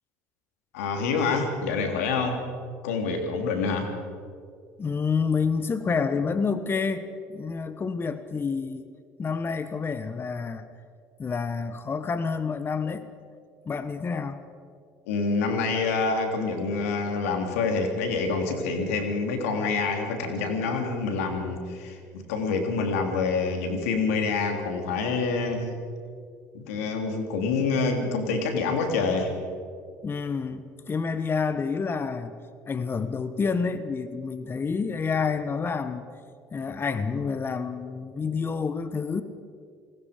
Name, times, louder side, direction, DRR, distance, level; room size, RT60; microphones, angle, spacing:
voice 1, 0.7-2.4 2.8-3.9 15.1-25.8 26.5-29.3, left 4 dB, 90° left, 4 dB, 3.1 m, -27 dB
voice 2, 4.8-7.0 7.3-8.8 9.2-10.7 11.2-13.1 13.7-14.4 30.0-32.3 32.7-36.1 36.5-39.2, left 5 dB, 30° left, 11 dB, 1.3 m, -28 dB
28.5 x 19.5 x 5.2 m, 2.2 s
supercardioid pair, 80°, 7 cm